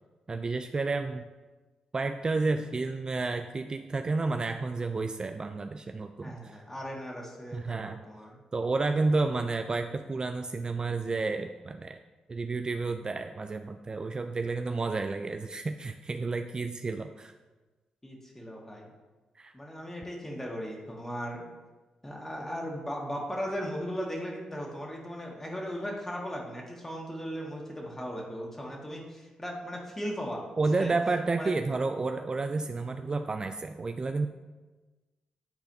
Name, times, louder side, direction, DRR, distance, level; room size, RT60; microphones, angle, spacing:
voice 1, 0.3-1.2 1.9-6.6 7.5-8.0 8.5-12.0 12.3-17.3 19.4-19.5 30.6-34.3, right 3 dB, 35° right, 7 dB, 0.3 m, -31 dB
voice 2, 6.2-8.4 18.0-18.9 19.5-21.4 22.0-30.4 30.8-30.9 31.4-31.6, equal, 15° left, -1 dB, 1.7 m, -37 dB
10.5 x 4.0 x 2.8 m, 1.2 s
supercardioid pair, 60°, 2 cm